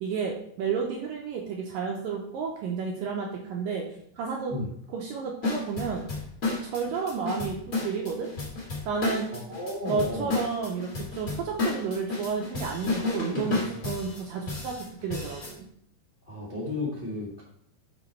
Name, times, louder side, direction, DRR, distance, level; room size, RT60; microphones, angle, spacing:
voice 1, 0.0-3.8 4.2-4.5 4.9-6.1 6.5-8.3 8.9-9.3 9.9-15.7, right 5 dB, 80° right, 0 dB, 2.0 m, -31 dB
sound 1, 5.4-15.5, left 3 dB, 35° left, 1.4 m, -32 dB
voice 2, 9.3-10.4 13.8-13.9 16.3-17.4, left 2 dB, 85° left, -6 dB, 0.5 m, -33 dB
6.1 x 6.0 x 4.4 m, 0.67 s
omnidirectional pair, 4.8 m